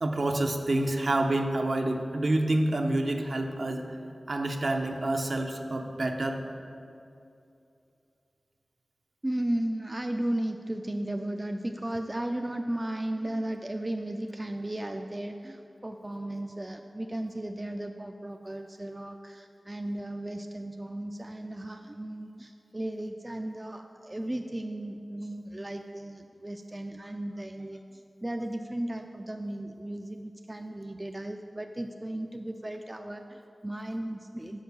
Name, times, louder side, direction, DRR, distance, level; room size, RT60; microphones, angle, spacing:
voice 1, 0.0-3.9 4.3-6.4, right 1 dB, 60° right, 4 dB, 0.6 m, -28 dB
voice 2, 9.2-27.8 28.2-34.6, right 1 dB, 25° right, 5 dB, 0.3 m, -35 dB
6.4 x 5.0 x 6.9 m, 2.6 s
wide cardioid pair, 80°, 0 cm